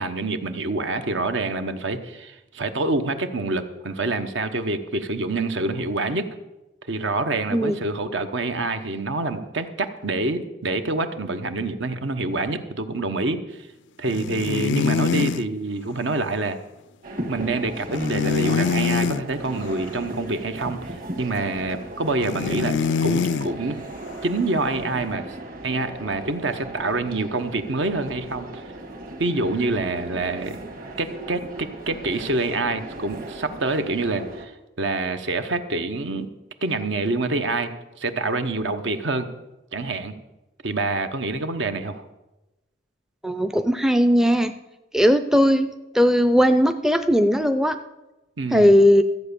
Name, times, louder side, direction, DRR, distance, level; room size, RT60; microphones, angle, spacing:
voice 1, 0.0-6.3 6.9-13.4 14.0-16.6 17.3-20.8 21.2-23.8 24.2-25.4 25.6-28.6 29.2-30.6 31.0-34.5 34.8-36.3 36.6-37.7 38.0-39.3 39.7-40.1 40.6-42.0 48.4-48.7, right 2 dB, 70° right, 9 dB, 1.0 m, -26 dB
sound 1, 14.1-15.5 17.9-19.2 22.2-23.5, left 6 dB, 70° left, 0.4 m, -24 dB
sound 2, 17.0-34.5, right 1 dB, 45° right, 1.8 m, -36 dB
voice 2, 43.2-44.5 44.9-47.8 48.5-49.0, equal, 5° right, 9 dB, 0.4 m, -18 dB
14.0 x 8.0 x 6.9 m, 1.0 s
head